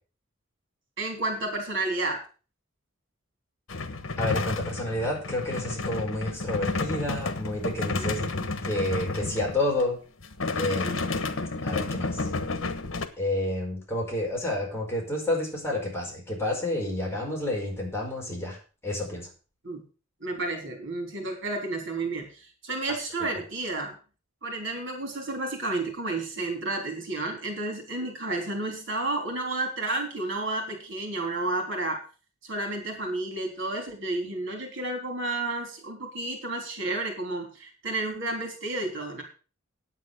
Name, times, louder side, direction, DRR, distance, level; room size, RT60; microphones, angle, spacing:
voice 1, 1.0-2.2 8.0-8.5 10.8-11.5 19.6-19.8 20.2-23.9 24.4-32.0 32.4-39.2, right 2 dB, 65° right, 3 dB, 3.6 m, -31 dB
sound 1, 3.7-9.8 10.2-13.1, left 3 dB, 80° left, 1.3 m, -31 dB
voice 2, 4.2-8.2 8.6-10.0 10.6-11.2 11.6-12.3 13.2-19.3, left 1 dB, 15° left, -2 dB, 4.9 m, -30 dB
9.7 x 8.4 x 6.6 m, 0.36 s
head